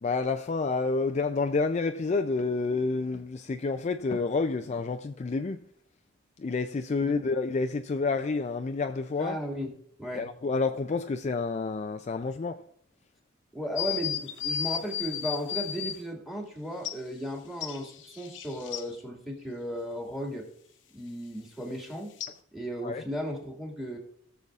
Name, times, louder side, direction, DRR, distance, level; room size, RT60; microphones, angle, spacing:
voice 1, 0.0-5.6 6.4-9.4 10.1-12.7 22.8-23.0, left 4 dB, 35° left, 0.4 m, -29 dB
voice 2, 9.2-9.7 10.0-10.3 13.5-20.5 20.9-22.1 22.5-24.0, equal, ahead, 2.0 m, -35 dB
sound 1, 13.8-16.0 16.9-17.0 17.6-18.8 22.2-22.3, left 9 dB, 70° left, 0.8 m, -33 dB
18.5 x 6.9 x 2.4 m
head